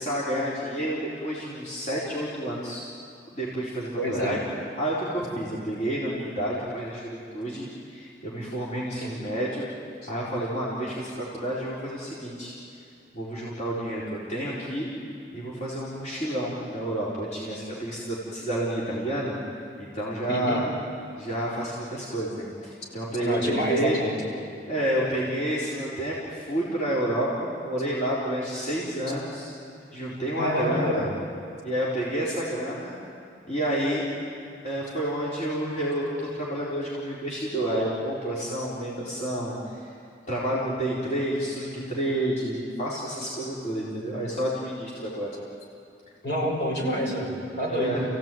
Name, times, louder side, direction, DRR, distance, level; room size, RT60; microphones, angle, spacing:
voice 1, 0.0-2.9 3.3-4.4 4.8-9.7 10.1-12.6 13.1-14.9 15.3-19.4 19.8-20.7 21.2-24.0 24.7-29.5 29.9-31.0 31.6-33.0 33.5-34.1 34.6-39.9 40.3-45.4 47.7-48.0, right 1 dB, 40° left, -7 dB, 4.2 m, -29 dB
voice 2, 4.0-4.3 9.0-9.1 20.3-20.6 23.2-24.1 30.4-31.1 46.2-48.0, equal, 65° left, -2 dB, 6.5 m, -27 dB
30.0 x 16.5 x 9.3 m, 2.4 s
head